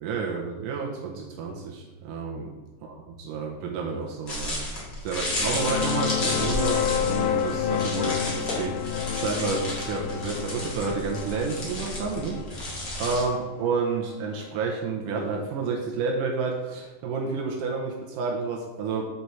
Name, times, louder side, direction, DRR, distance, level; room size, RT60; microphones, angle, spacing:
voice 1, 0.0-2.5 2.8-12.4 13.0-19.1, right 4 dB, 80° right, 0 dB, 2.4 m, -30 dB
sound 1, 4.3-13.2, left 1 dB, 40° left, 2.0 m, -33 dB
sound 2, 5.2-14.5, left 9 dB, 80° left, 2.1 m, -30 dB
8.2 x 4.2 x 4.6 m, 1.2 s
omnidirectional pair, 3.8 m